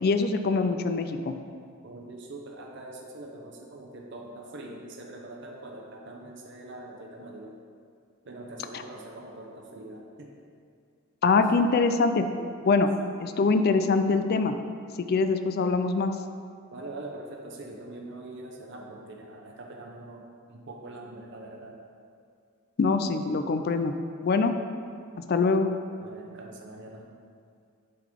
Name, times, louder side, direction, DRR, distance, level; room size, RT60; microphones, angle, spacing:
voice 1, 0.0-1.3 11.2-12.2 12.6-12.9 13.2-14.5 15.0-16.1 22.8-23.9 24.2-24.5 25.3-25.7, left 4 dB, 45° left, 8 dB, 0.4 m, -23 dB
voice 2, 1.8-7.5 8.2-10.3 16.7-21.8 26.0-27.1, right 2 dB, 55° right, 0 dB, 0.7 m, -43 dB
7.6 x 3.9 x 5.2 m, 2.3 s
head